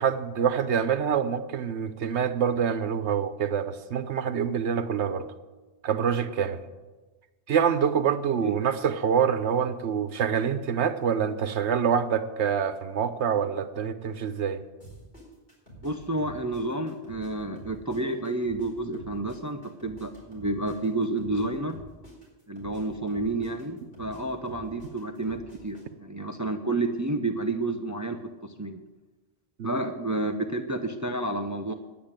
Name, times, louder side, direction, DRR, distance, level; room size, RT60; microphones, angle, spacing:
voice 1, 0.0-5.3 5.8-6.6 7.5-14.6 29.6-29.7, right 7 dB, 85° right, 10 dB, 1.2 m, -26 dB
sound 1, 14.8-17.3 17.6-21.4 21.7-25.8, right 1 dB, 55° left, 4.8 m, -47 dB
voice 2, 15.8-21.8 22.5-28.8 29.6-31.7, right 2 dB, 20° right, 7 dB, 0.6 m, -30 dB
10.5 x 8.7 x 8.8 m, 1.2 s
omnidirectional pair, 1.1 m